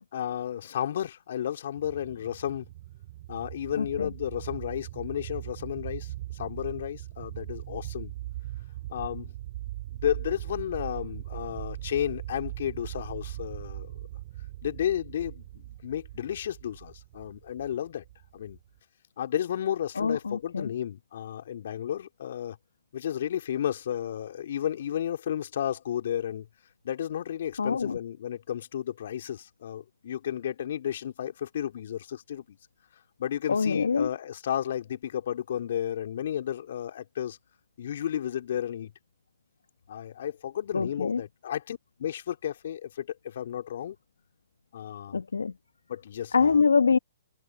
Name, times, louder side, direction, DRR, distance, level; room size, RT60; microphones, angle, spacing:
voice 1, 0.1-2.7 3.3-8.1 8.9-9.3 9.9-14.0 14.6-18.0 18.3-18.6 19.2-22.6 22.9-26.5 26.8-32.6 33.2-37.4 37.8-38.9 39.9-44.0 44.7-45.2 45.9-46.6, left 10 dB, 60° left, 3.4 m, -33 dB
sound 1, 1.8-18.8, right 16 dB, 45° right, 3.7 m, -40 dB
voice 2, 3.8-4.1 20.0-20.7 27.6-28.0 33.5-34.1 40.7-41.2 45.1-45.5 46.3-47.0, left 5 dB, 80° left, 1.4 m, -25 dB
hypercardioid pair, 125°, 0 cm